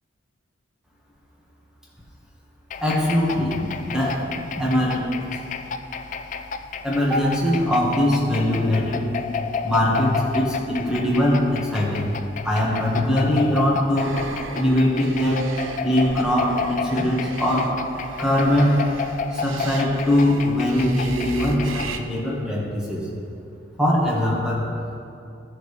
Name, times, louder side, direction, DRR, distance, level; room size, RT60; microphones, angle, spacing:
sound 1, 2.7-22.0, left 5 dB, 40° left, 0.3 m, -32 dB
voice 1, 2.8-5.2 6.8-9.2 9.6-12.1 12.4-14.2 14.5-15.5 15.8-17.8 18.2-18.9 19.3-23.1 23.8-24.7, left 1 dB, 5° right, -5 dB, 1.6 m, -21 dB
sound 2, 13.9-22.0, right 4 dB, 75° right, 0.5 m, -37 dB
14.5 x 6.5 x 3.4 m, 2.5 s
head